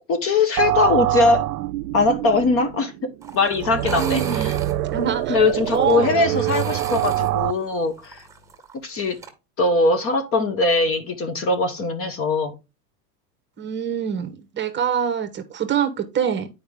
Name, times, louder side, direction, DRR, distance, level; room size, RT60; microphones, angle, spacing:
voice 1, 0.1-1.5 1.9-4.5 5.3-8.2 8.8-9.2 9.6-12.5, left 3 dB, 30° left, 0.9 m, -21 dB
sound 1, 0.6-7.5, right 15 dB, 70° right, 0.6 m, -25 dB
sound 2, 3.2-9.3, right 5 dB, 5° right, 1.8 m, -37 dB
voice 2, 3.8-4.5 4.9-5.4 5.7-6.4 13.6-16.5, right 8 dB, 20° right, 1.1 m, -25 dB
8.8 x 5.1 x 3.6 m
hypercardioid pair, 120°, 49 cm